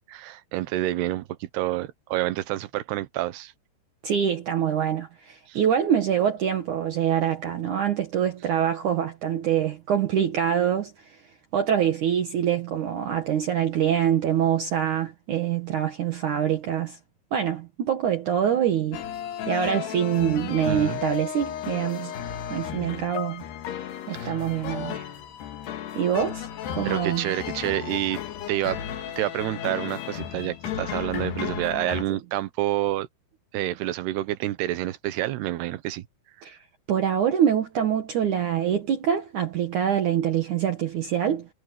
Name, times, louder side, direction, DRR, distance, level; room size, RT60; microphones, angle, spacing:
voice 1, 0.1-3.5 5.5-5.6 20.7-21.0 24.1-24.3 26.8-28.2 28.5-28.8 29.2-33.1 33.5-36.0, right 15 dB, 85° right, 3.1 m, -28 dB
voice 2, 4.0-11.2 11.5-17.0 17.3-19.0 19.5-22.1 22.5-23.4 24.1-25.1 25.9-27.4 36.4-36.6 36.9-41.5, right 9 dB, 60° right, 2.6 m, -25 dB
sound 1, 18.9-32.0, left 9 dB, 85° left, 3.9 m, -34 dB
omnidirectional pair, 4.6 m